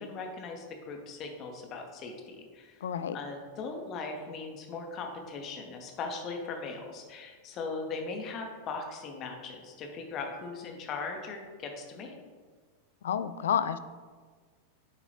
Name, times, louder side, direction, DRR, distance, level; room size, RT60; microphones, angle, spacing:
voice 1, 0.0-2.9 3.1-12.1, left 4 dB, 35° left, 2 dB, 0.9 m, -39 dB
voice 2, 2.8-3.2 13.0-13.8, left 8 dB, 60° left, 12 dB, 0.3 m, -29 dB
10.0 x 3.9 x 3.1 m, 1.5 s
figure-of-eight pair, 90°, 0 cm